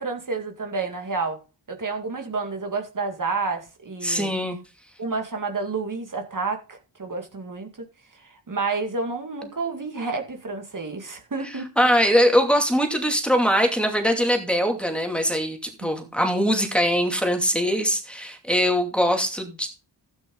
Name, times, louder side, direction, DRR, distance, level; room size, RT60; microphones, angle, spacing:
voice 1, 0.0-1.4 1.7-4.3 5.0-7.7 8.2-11.7, right 4 dB, 45° right, 2.2 m, -30 dB
voice 2, 4.0-4.6 11.4-19.7, equal, ahead, 2.6 m, -22 dB
12.5 x 9.1 x 3.9 m
wide cardioid pair, 85°, 44 cm